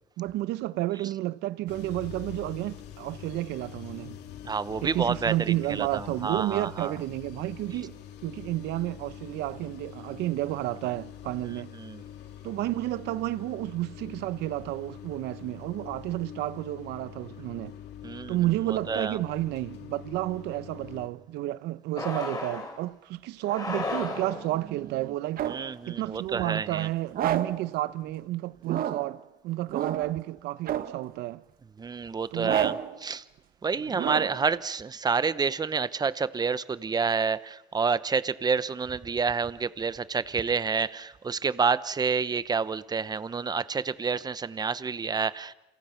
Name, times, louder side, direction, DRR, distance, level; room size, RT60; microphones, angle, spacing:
voice 1, 0.2-4.2 4.8-11.7 12.4-17.8 18.3-25.4 25.9-31.4 32.3-32.6 33.9-34.0, right 16 dB, 85° right, 0.9 m, -31 dB
sound 1, 1.7-21.1, left 10 dB, 80° left, 2.8 m, -45 dB
voice 2, 4.4-6.9 11.7-12.0 18.0-18.3 18.7-19.2 25.5-26.9 31.8-33.2 33.6-45.5, right 5 dB, 25° right, 0.9 m, -29 dB
sound 2, 22.0-22.8 23.4-24.6, left 3 dB, 20° left, 5.0 m, -34 dB
sound 3, 23.7-25.8 27.1-27.7 28.6-29.2 29.7-30.2 30.7-31.1 32.4-33.0 33.9-34.5, right 10 dB, 60° right, 1.3 m, -32 dB
29.0 x 28.0 x 5.9 m
cardioid pair, 110°, 17 cm